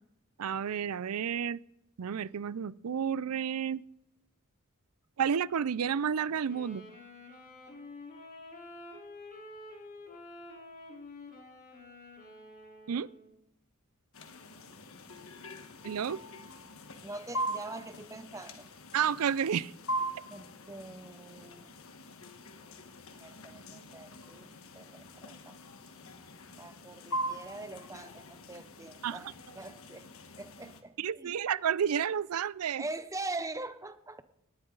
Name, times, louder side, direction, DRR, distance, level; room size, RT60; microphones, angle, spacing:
voice 1, 0.4-1.6 2.0-3.8 5.2-6.8 12.9-13.1 15.8-16.2 18.9-19.7 29.0-29.2 31.0-32.8, right 7 dB, 85° right, 20 dB, 0.5 m, -31 dB
Wind instrument woodwind instrument, 6.4-13.4, left 2 dB, 40° left, 3.8 m, -49 dB
sound 1, 14.1-30.8, right 1 dB, 70° left, 1.4 m, -42 dB
voice 2, 17.0-18.7 20.3-21.7 23.2-25.6 26.6-29.3 29.6-30.1 30.4-31.3 32.8-34.2, right 2 dB, 15° right, 12 dB, 0.7 m, -43 dB
19.0 x 11.0 x 3.9 m, 0.81 s
head